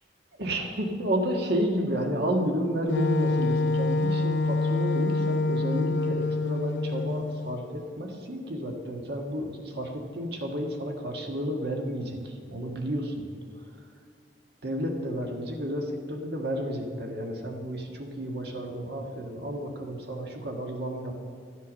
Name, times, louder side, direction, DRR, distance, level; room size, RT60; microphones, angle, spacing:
voice 1, 0.3-13.3 13.5-13.7 14.6-21.2, equal, 65° right, 2 dB, 1.6 m, -31 dB
Wind instrument woodwind instrument, 2.9-7.6, left 2 dB, 80° left, 0.5 m, -26 dB
13.5 x 8.2 x 6.3 m, 2.2 s
head